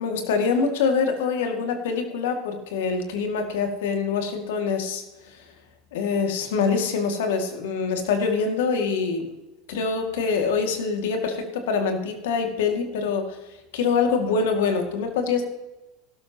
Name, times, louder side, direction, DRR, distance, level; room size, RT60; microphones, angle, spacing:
voice 1, 0.0-5.4 5.9-9.3 9.7-13.4 13.7-15.4, left 5 dB, 80° left, 4 dB, 2.2 m, -25 dB
15.5 x 12.5 x 3.0 m, 1.0 s
hypercardioid pair, 95°, 0 cm